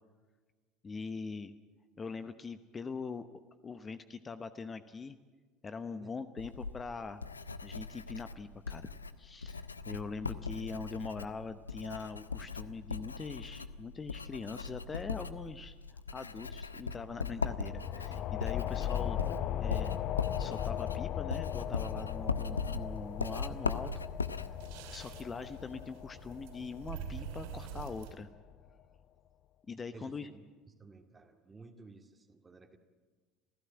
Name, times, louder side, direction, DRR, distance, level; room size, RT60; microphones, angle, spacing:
voice 1, 0.8-1.5 2.0-3.3 3.6-5.2 5.6-7.2 7.6-20.0 20.4-23.9 24.9-28.3 29.7-30.3, left 4 dB, 25° left, 11 dB, 1.0 m, -42 dB
Writing, 6.4-25.9, left 5 dB, 85° left, 0.7 m, -40 dB
sound 1, 17.2-28.4, left 10 dB, 50° left, 0.7 m, -38 dB
sound 2, 21.6-28.1, right 8 dB, 65° right, 4.0 m, -48 dB
voice 2, 29.9-30.4 30.8-32.8, right 3 dB, 20° right, 4 dB, 2.2 m, -54 dB
27.5 x 16.0 x 8.9 m, 1.4 s
figure-of-eight pair, 65°, 0 cm